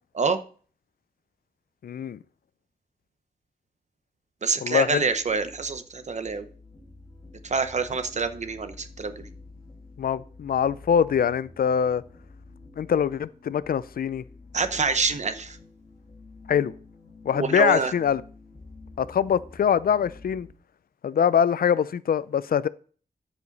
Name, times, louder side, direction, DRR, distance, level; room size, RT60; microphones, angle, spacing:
voice 1, 1.8-2.2 4.6-5.1 10.0-12.0 12.8-14.2 16.5-16.7 17.3-18.2 19.0-20.5 21.0-22.7, left 8 dB, 75° left, 0.4 m, -23 dB
voice 2, 4.4-6.4 7.4-9.3 14.5-15.6 17.3-17.9, right 4 dB, 50° right, 0.8 m, -26 dB
sound 1, 4.8-20.5, left 3 dB, 30° left, 1.8 m, -49 dB
13.5 x 5.1 x 4.0 m
wide cardioid pair, 125°, 15 cm